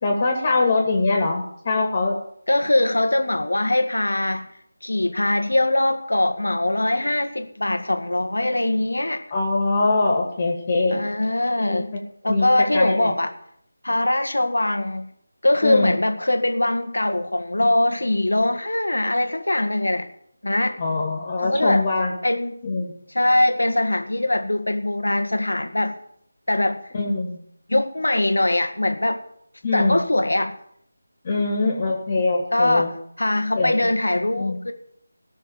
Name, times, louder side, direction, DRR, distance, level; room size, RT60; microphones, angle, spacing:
voice 1, 0.0-2.2 9.3-11.0 11.7-11.8 12.3-12.5 12.7-13.1 15.6-16.0 20.8-22.2 22.6-22.9 26.9-27.4 29.6-30.0 31.2-32.9 33.5-33.9 34.4-34.6, left 3 dB, 30° left, 1 dB, 2.4 m, -22 dB
voice 2, 2.5-4.4 4.8-9.2 10.9-11.9 12.2-13.3 13.8-15.1 15.4-20.1 20.4-20.8 21.4-21.8 22.2-22.6 23.1-26.0 26.5-26.8 27.7-29.2 29.7-30.5 32.5-32.9 33.2-34.7, left 1 dB, 85° left, 8 dB, 1.7 m, -22 dB
17.5 x 6.5 x 7.3 m, 0.68 s
figure-of-eight pair, 165°, 0 cm